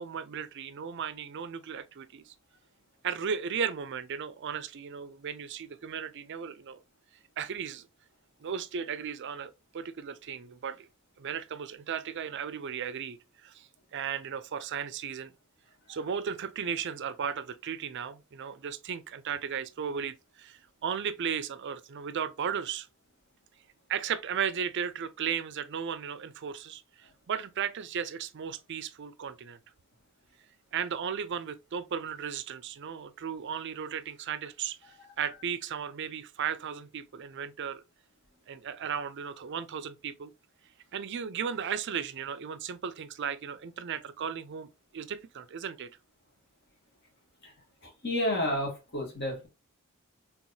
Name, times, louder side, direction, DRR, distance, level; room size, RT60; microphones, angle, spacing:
voice 1, 0.0-2.3 3.0-6.8 7.4-7.9 8.4-10.9 11.2-15.3 15.9-22.9 23.9-29.6 30.7-34.8 35.2-37.8 38.5-40.3 40.9-44.7 44.9-45.9, right 7 dB, 55° right, 0.4 m, -35 dB
voice 2, 48.0-49.5, left 1 dB, 50° left, 1.9 m, -30 dB
4.5 x 3.4 x 2.6 m
head